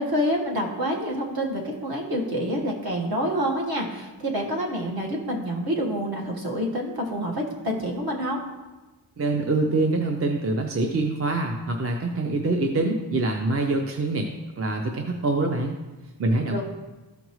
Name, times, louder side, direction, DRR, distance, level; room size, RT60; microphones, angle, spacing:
voice 1, 0.0-8.4 16.5-16.6, equal, 55° right, -2 dB, 1.6 m, -27 dB
voice 2, 9.2-14.3 14.6-15.8 16.2-16.6, right 2 dB, 35° right, 3 dB, 0.6 m, -25 dB
13.0 x 5.2 x 3.1 m, 1.1 s
wide cardioid pair, 150°, 43 cm